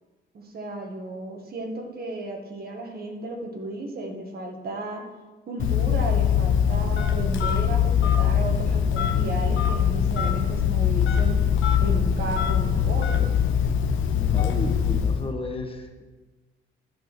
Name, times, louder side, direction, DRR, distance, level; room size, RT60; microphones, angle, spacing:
voice 1, 0.3-5.0 5.5-11.4 11.8-13.3, right 2 dB, 50° right, 3 dB, 1.8 m, -34 dB
Telephone, 5.6-15.3, left 8 dB, 80° left, 0.9 m, -22 dB
voice 2, 14.2-16.1, left 3 dB, 30° left, 4 dB, 1.4 m, -33 dB
13.5 x 4.7 x 6.1 m, 1.2 s
cardioid pair, 90°, 20 cm